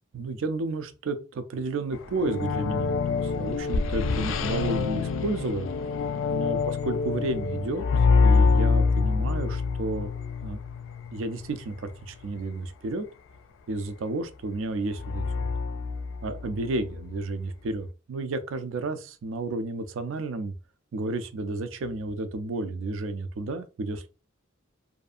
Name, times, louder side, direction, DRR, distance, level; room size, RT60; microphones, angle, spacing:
voice 1, 0.1-5.7 6.3-10.1 10.4-10.6 11.1-13.1 13.7-15.5 16.2-20.5 20.9-24.1, right 2 dB, 80° right, 0.4 m, -32 dB
sound 1, 1.9-11.9 15.0-16.8, left 4 dB, 75° left, 0.3 m, -26 dB
2.6 x 2.4 x 2.4 m
head